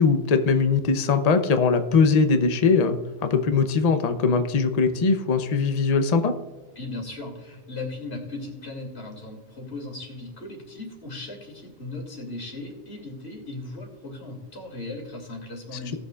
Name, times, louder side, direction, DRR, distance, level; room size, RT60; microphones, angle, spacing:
voice 1, 0.0-6.3, left 5 dB, 40° left, 8 dB, 0.8 m, -21 dB
voice 2, 6.8-16.0, left 2 dB, 65° left, 1 dB, 2.9 m, -37 dB
18.5 x 6.8 x 2.4 m, 1.3 s
omnidirectional pair, 1.2 m